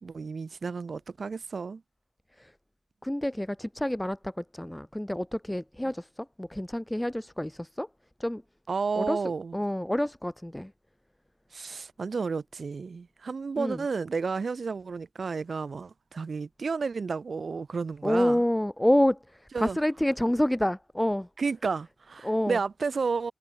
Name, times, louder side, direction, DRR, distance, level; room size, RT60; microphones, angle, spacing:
voice 1, 0.0-1.8 8.7-9.6 11.5-18.4 19.5-19.8 21.4-23.3, right 4 dB, 85° right, 1.5 m, -32 dB
voice 2, 3.0-7.9 8.2-8.4 9.0-9.2 9.5-10.7 13.6-13.8 18.0-21.3 22.2-22.6, left 1 dB, 10° left, 0.4 m, -28 dB
wide cardioid pair, 85°, 0 cm